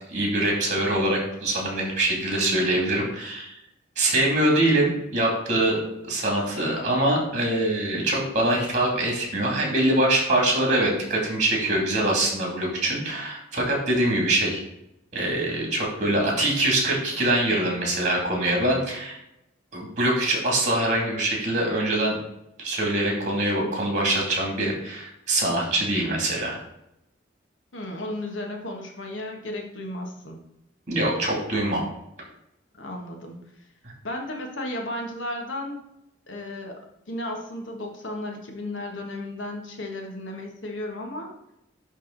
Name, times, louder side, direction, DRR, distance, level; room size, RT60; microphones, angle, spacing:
voice 1, 0.1-3.5 4.0-5.8 6.0-14.6 15.1-19.2 19.7-22.2 22.6-26.6 30.9-31.8, right 1 dB, 40° right, -1 dB, 2.5 m, -24 dB
voice 2, 27.7-30.4 32.8-33.4 34.0-35.8 36.3-36.8 37.1-41.3, left 1 dB, 85° left, 2 dB, 1.4 m, -34 dB
10.5 x 3.6 x 3.9 m, 0.84 s
head